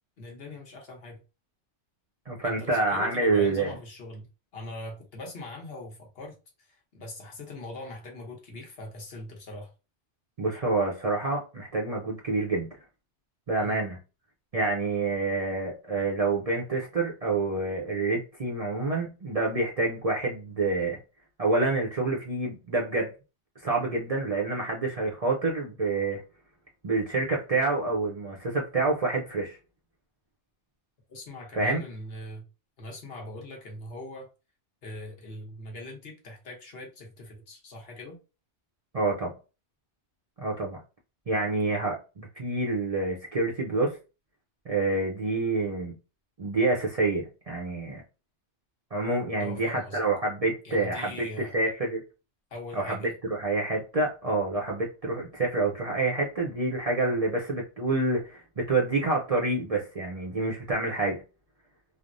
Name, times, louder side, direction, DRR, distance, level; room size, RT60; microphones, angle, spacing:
voice 1, 0.2-1.2 2.4-4.3 4.5-9.7 13.6-13.8 31.1-32.4 32.8-34.3 34.8-38.2 49.4-50.0 50.6-51.6 52.5-53.2, left 1 dB, 60° left, 1.1 m, -41 dB
voice 2, 2.3-3.7 10.4-12.7 13.5-14.0 14.5-21.0 21.4-23.1 23.6-26.2 26.8-29.6 31.5-31.8 38.9-39.3 40.4-40.8 41.3-44.0 44.7-45.9 46.4-48.0 48.9-52.0 52.7-61.2, right 3 dB, 40° right, 0.6 m, -27 dB
3.2 x 2.0 x 2.5 m
omnidirectional pair, 1.2 m